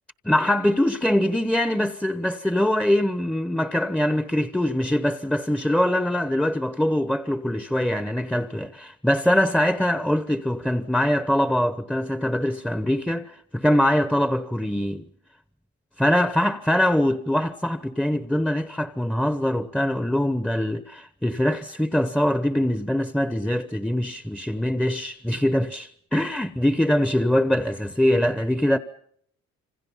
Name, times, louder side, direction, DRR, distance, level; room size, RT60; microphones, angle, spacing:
voice 1, 0.2-15.0 16.0-28.8, left 1 dB, 5° left, 1.0 m, -23 dB
27.5 x 25.5 x 5.7 m
cardioid pair, 90°, 30 cm